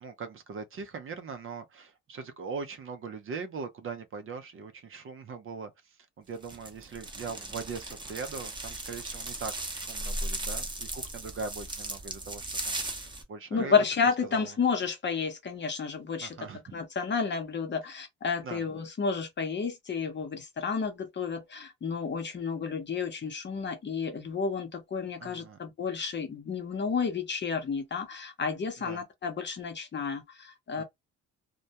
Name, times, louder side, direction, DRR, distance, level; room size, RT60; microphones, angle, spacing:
voice 1, 0.0-13.7 14.3-14.5 16.2-16.6 18.4-18.6 25.2-25.6 28.8-29.0 30.8-30.9, right 5 dB, 45° right, 0.5 m, -41 dB
sound 1, 6.4-13.2, right 2 dB, 15° right, 0.8 m, -37 dB
voice 2, 13.5-16.4 16.7-30.8, left 5 dB, 35° left, 0.8 m, -31 dB
2.2 x 2.1 x 2.8 m
cardioid pair, 90°, 30 cm